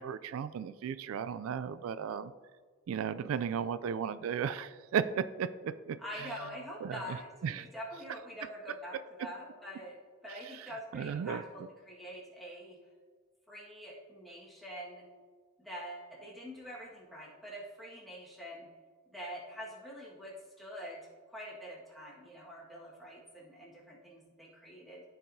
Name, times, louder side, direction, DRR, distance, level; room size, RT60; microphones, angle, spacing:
voice 1, 0.0-2.3 2.9-6.0 6.8-7.2 7.4-7.6 10.9-11.4, right 7 dB, 85° right, 15 dB, 0.3 m, -35 dB
voice 2, 6.0-12.8 13.5-15.0 15.6-18.7 19.1-21.0 21.3-25.0, equal, ahead, -5 dB, 1.6 m, -45 dB
13.5 x 4.7 x 2.7 m, 1.5 s
head